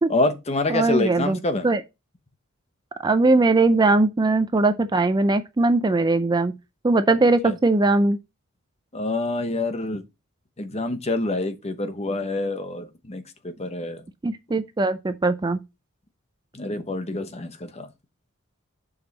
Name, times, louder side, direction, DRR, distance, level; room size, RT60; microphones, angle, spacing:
voice 1, 0.1-1.7 7.4-7.6 8.9-10.0 10.6-14.0 16.5-17.9, left 2 dB, 30° left, 0.9 m, -27 dB
voice 2, 0.7-1.4 1.6-1.8 3.0-6.5 6.8-8.2 14.2-15.6, right 2 dB, 20° right, 0.4 m, -20 dB
7.0 x 5.5 x 4.0 m
head